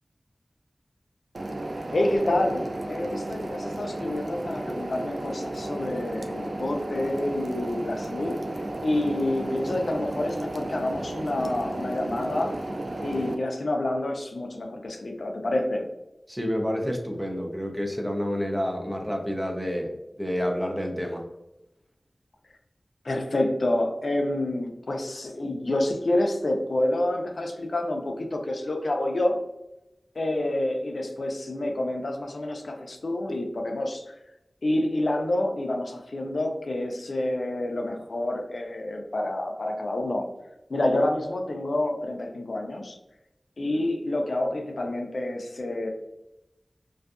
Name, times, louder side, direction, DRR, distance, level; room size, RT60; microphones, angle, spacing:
sound 1, 1.3-13.3, right 1 dB, 65° right, 0.3 m, -33 dB
voice 1, 1.9-12.6 13.0-15.9 23.0-29.4 30.2-34.1 34.6-40.3 40.7-43.0 43.6-45.9, left 1 dB, 80° left, 3 dB, 0.4 m, -28 dB
voice 2, 16.3-21.2, equal, 5° right, 2 dB, 0.5 m, -29 dB
2.6 x 2.3 x 2.4 m, 0.92 s
wide cardioid pair, 60°, 0 cm